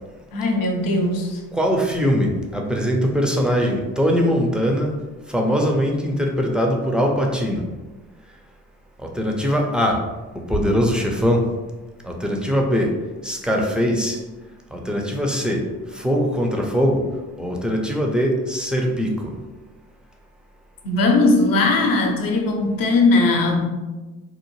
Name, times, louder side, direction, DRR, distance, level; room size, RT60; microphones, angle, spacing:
voice 1, 0.3-1.4 20.8-23.6, left 2 dB, 50° left, 2 dB, 0.7 m, -19 dB
voice 2, 1.5-4.9 5.3-7.6 9.0-10.0 10.5-11.4 12.0-12.9 13.2-14.2 14.7-15.6 15.9-17.0 17.4-19.3, equal, ahead, 0 dB, 0.4 m, -21 dB
2.8 x 2.0 x 3.0 m, 1.2 s
hypercardioid pair, 50°, 42 cm